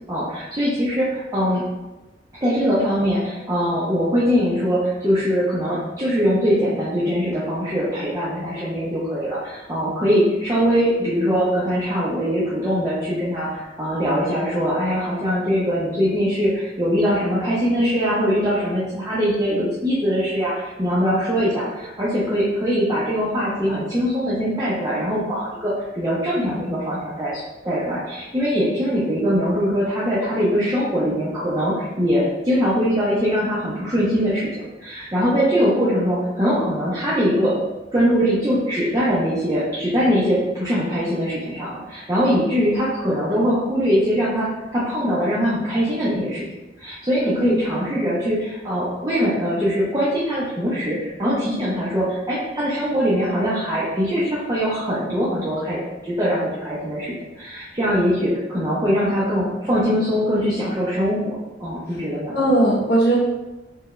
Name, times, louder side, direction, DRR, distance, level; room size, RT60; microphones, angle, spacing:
voice 1, 0.1-1.6 2.4-34.5 34.8-37.5 37.9-46.4 46.8-62.4, equal, 20° right, -9 dB, 0.6 m, -22 dB
voice 2, 47.3-47.7 62.3-63.2, right 1 dB, 60° left, -4 dB, 0.8 m, -19 dB
4.5 x 2.2 x 3.0 m, 1.1 s
head